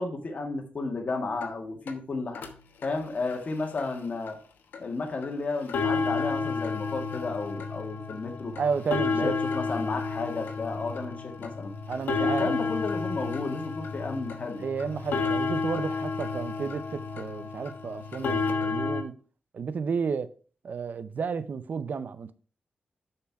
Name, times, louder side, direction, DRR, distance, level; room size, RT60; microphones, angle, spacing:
voice 1, 0.0-2.4 2.8-4.4 4.8-8.5 9.1-11.7 12.2-14.6, left 3 dB, 45° left, 1.9 m, -33 dB
sound 1, 1.4-1.5 1.9-2.0 2.3-2.5 2.8-2.9 3.3-3.4 3.8-3.9 4.3-4.4 4.7-4.8 5.2-5.3 5.6-19.0, left 4 dB, 85° left, 1.1 m, -31 dB
voice 2, 8.6-9.3 11.9-12.5 14.6-19.1 19.5-20.3 20.6-22.3, right 5 dB, 60° right, 0.6 m, -32 dB
6.7 x 5.7 x 4.7 m
cardioid pair, 90°, 3 cm